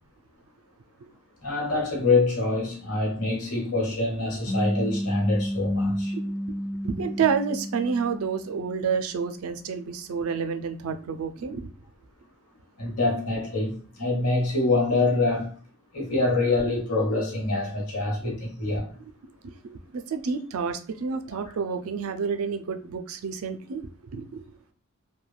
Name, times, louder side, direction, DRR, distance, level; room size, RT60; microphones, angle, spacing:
voice 1, 1.4-6.1 12.8-15.5 15.9-18.9, left 2 dB, 90° left, 1.2 m, -25 dB
sound 1, 4.5-9.1, equal, 20° left, 0.7 m, -32 dB
voice 2, 6.1-6.6 6.8-11.7 18.6-18.7 19.2-24.6, right 6 dB, 75° right, 0.4 m, -30 dB
3.1 x 2.2 x 2.3 m
head